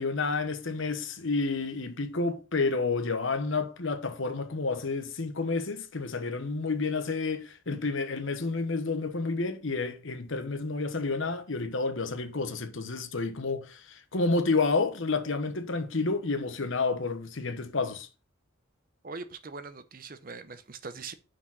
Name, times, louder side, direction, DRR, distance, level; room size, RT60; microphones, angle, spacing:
voice 1, 0.0-18.1, left 3 dB, 65° left, 1.0 m, -30 dB
voice 2, 19.0-21.1, right 4 dB, 40° right, 0.7 m, -41 dB
6.1 x 4.8 x 6.0 m
head